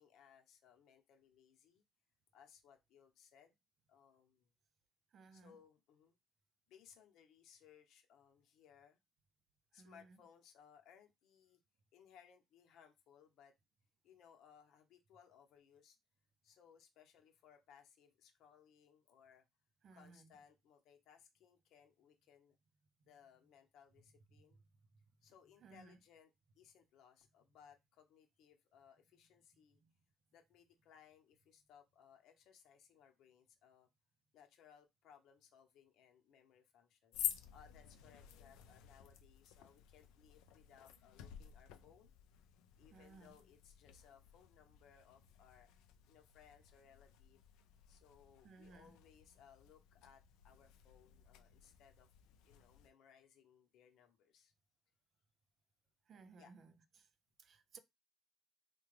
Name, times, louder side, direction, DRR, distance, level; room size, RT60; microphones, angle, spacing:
voice 1, 0.0-1.8 2.3-3.5 3.9-4.5 5.3-6.2 6.7-9.0 9.7-11.6 11.9-13.5 14.0-16.0 16.4-19.4 19.9-22.6 23.1-24.6 25.2-26.3 26.6-29.8 30.3-33.9 34.3-42.1 42.8-45.7 46.1-47.4 47.9-52.1 52.4-54.5 56.3-56.5, left 8 dB, 70° left, 0.9 m, -65 dB
voice 2, 5.1-5.6 9.7-10.2 19.8-20.4 24.5-24.6 25.6-26.0 29.5-29.9 42.9-43.4 48.4-49.0 56.1-57.1 57.4-57.8, right 4 dB, 50° right, 0.5 m, -60 dB
sound 1, 37.1-52.9, left 11 dB, 90° left, 0.4 m, -51 dB
3.4 x 2.2 x 3.2 m
cardioid pair, 100°, 0 cm